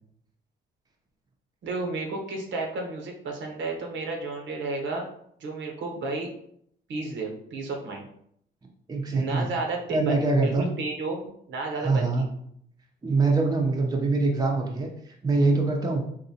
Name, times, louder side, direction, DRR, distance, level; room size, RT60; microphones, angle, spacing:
voice 1, 1.6-5.1 5.4-6.3 6.9-8.0 9.1-12.3, right 3 dB, 65° right, 1 dB, 0.9 m, -32 dB
voice 2, 8.9-9.5 9.9-10.7 11.8-12.2 13.0-14.9 15.2-16.0, right 3 dB, 20° right, 1 dB, 0.6 m, -24 dB
3.8 x 2.6 x 2.8 m, 0.70 s
cardioid pair, 90°, 20 cm